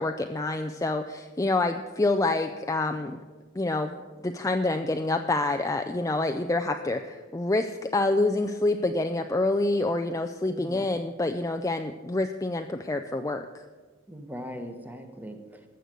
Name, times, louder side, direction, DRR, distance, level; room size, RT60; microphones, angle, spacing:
voice 1, 0.0-3.2 3.5-13.6, left 2 dB, 15° left, 5 dB, 0.4 m, -27 dB
voice 2, 10.5-10.9 14.1-15.7, equal, 10° right, 6 dB, 1.2 m, -40 dB
14.5 x 6.6 x 9.1 m, 1.4 s
head